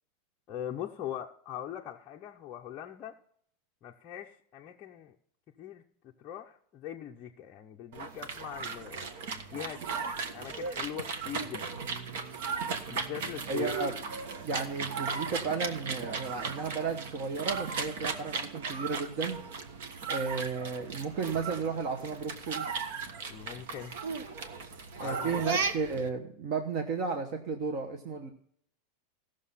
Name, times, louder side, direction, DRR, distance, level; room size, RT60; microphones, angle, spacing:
voice 1, 0.5-3.1 3.8-5.2 5.6-5.8 6.2-9.0 9.5-9.8 10.3-11.7 12.9-13.8 23.3-23.9 25.0-25.7, left 10 dB, 25° left, -1 dB, 0.6 m, -41 dB
sound 1, 7.9-26.1, right 5 dB, 60° right, 1.3 m, -36 dB
voice 2, 13.5-13.9 14.4-19.4 20.1-22.7 25.0-28.3, right 4 dB, 35° right, 4 dB, 1.0 m, -33 dB
16.5 x 6.5 x 5.6 m, 0.65 s
supercardioid pair, 180°, 0 cm